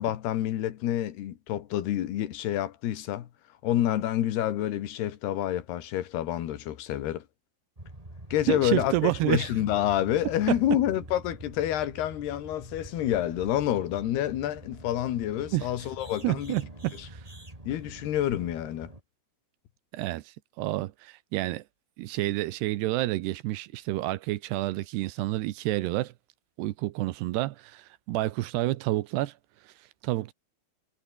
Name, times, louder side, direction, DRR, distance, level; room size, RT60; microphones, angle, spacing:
voice 1, 0.0-3.3 3.6-7.2 8.3-16.6 17.0-17.1 17.7-18.9, left 12 dB, 65° left, 3.5 m, -28 dB
sound 1, 7.8-19.0, right 1 dB, 10° right, 3.5 m, -45 dB
voice 2, 8.5-9.5 10.5-10.6 15.5-15.7 16.2-17.2 19.9-21.6 22.0-26.1 26.6-29.3 29.7-29.8 30.0-30.3, right 17 dB, 75° right, 2.6 m, -29 dB
omnidirectional pair, 5.3 m